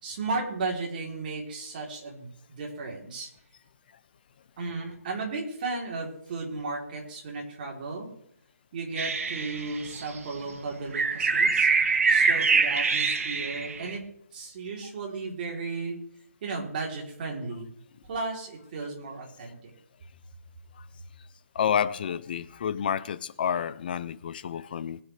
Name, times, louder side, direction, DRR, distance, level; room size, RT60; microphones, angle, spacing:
voice 1, 0.0-3.3 4.6-8.1 8.7-11.7 12.1-14.0 14.3-16.0 16.4-17.7 18.1-19.7, right 3 dB, 35° right, 3.3 m, -35 dB
sound 1, 9.0-10.2 10.9-14.0, right 4 dB, 60° right, 1.8 m, -24 dB
voice 2, 21.5-25.0, left 8 dB, 35° left, 0.6 m, -29 dB
21.0 x 9.4 x 3.3 m
hypercardioid pair, 165°, 9 cm